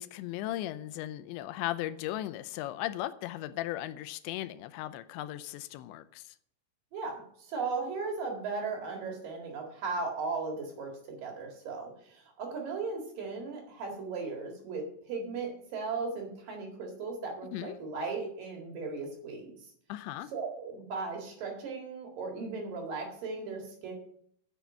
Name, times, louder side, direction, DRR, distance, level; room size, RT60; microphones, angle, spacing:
voice 1, 0.0-6.4 17.5-17.8 19.9-20.3, left 14 dB, 85° left, 2.8 m, -37 dB
voice 2, 6.9-7.2 7.5-19.5 20.3-23.9, right 4 dB, 55° right, 3.3 m, -37 dB
9.4 x 6.8 x 7.3 m
omnidirectional pair, 5.2 m